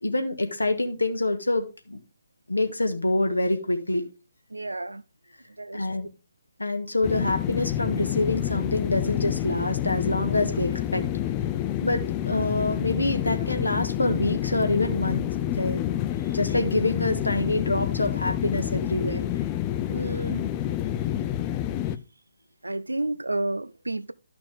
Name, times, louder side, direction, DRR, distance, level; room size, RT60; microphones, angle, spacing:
voice 1, 0.0-2.0 2.5-4.0 5.7-6.1 6.6-11.0 11.8-16.0 16.3-19.2 20.0-20.2, left 2 dB, 75° left, 1.3 m, -26 dB
voice 2, 4.5-5.0 5.6-5.9 19.9-20.5 22.6-24.1, right 2 dB, 80° right, 0.5 m, -31 dB
sound 1, 7.0-22.0, left 12 dB, 20° left, 0.5 m, -28 dB
11.5 x 6.0 x 3.5 m
figure-of-eight pair, 140°, 0 cm